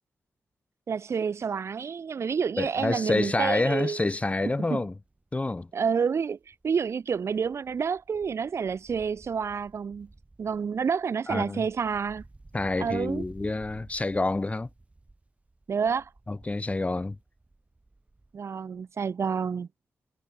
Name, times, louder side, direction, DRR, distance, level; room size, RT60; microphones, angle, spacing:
voice 1, 0.9-4.0 4.7-4.8 5.7-10.1 10.4-12.2 12.8-13.2 15.7-16.1 18.3-19.7, right 6 dB, 65° right, 2.3 m, -29 dB
Wind, 1.6-1.7 2.1-2.2 2.5-6.0 6.3-18.5 18.7-18.8, right 2 dB, 25° right, 5.6 m, -54 dB
voice 2, 2.6-4.9 5.3-5.7 11.3-11.7 12.5-14.7 16.3-17.2, left 2 dB, 25° left, 2.2 m, -28 dB
cardioid pair, 60°, 5 cm